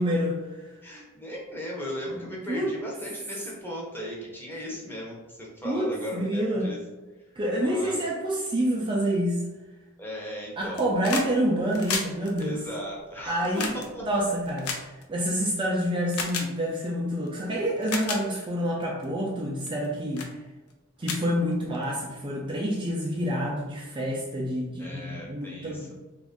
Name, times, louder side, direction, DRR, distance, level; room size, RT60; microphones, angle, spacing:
voice 1, 0.0-0.7 2.2-2.7 5.6-6.7 7.4-9.4 10.6-12.6 13.3-14.7 15.1-20.3 21.0-25.9, equal, 25° right, -3 dB, 0.4 m, -28 dB
voice 2, 0.8-6.8 7.6-8.0 10.0-10.8 12.4-14.1 24.8-25.9, equal, 10° left, -4 dB, 0.8 m, -37 dB
sound 1, 10.6-11.3 11.6-15.5 16.1-16.5 17.3-17.4 17.8-18.2 18.8-19.0 19.6-19.9 20.2-20.3 20.7-20.8 21.0-22.0 23.1-23.2, left 4 dB, 90° left, 0.5 m, -33 dB
2.9 x 2.5 x 3.6 m, 1.2 s
head